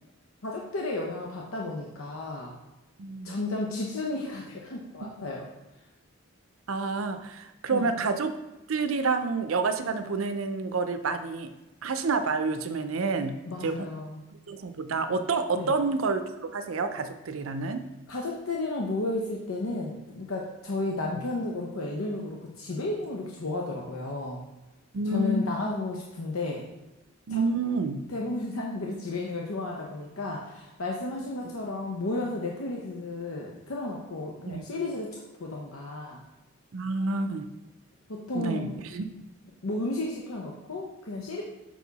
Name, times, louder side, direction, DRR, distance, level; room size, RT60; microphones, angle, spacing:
voice 1, 0.4-2.5 3.2-5.5 7.7-8.0 13.5-14.2 15.5-15.7 18.1-24.4 25.1-26.6 27.3-27.4 28.1-36.2 38.1-38.7 39.6-41.4, left 2 dB, 80° left, -1 dB, 0.8 m, -33 dB
voice 2, 3.0-3.3 5.0-5.1 6.7-8.3 8.7-11.5 11.8-13.9 14.5-16.3 16.5-17.8 24.9-25.4 27.3-28.0 34.5-34.7 36.7-37.5 38.3-39.0, right 3 dB, 75° right, 9 dB, 0.5 m, -29 dB
5.9 x 4.7 x 4.0 m, 1.0 s
head